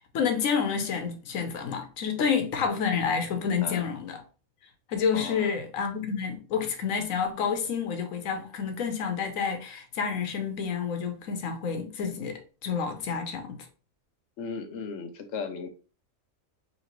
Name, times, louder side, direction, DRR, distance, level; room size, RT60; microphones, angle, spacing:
voice 1, 0.1-4.2 4.9-12.3 12.6-13.6, left 6 dB, 85° left, 1.2 m, -29 dB
voice 2, 5.1-5.5 14.4-15.7, left 5 dB, 65° left, 1.0 m, -36 dB
4.2 x 2.9 x 2.9 m
omnidirectional pair, 1.4 m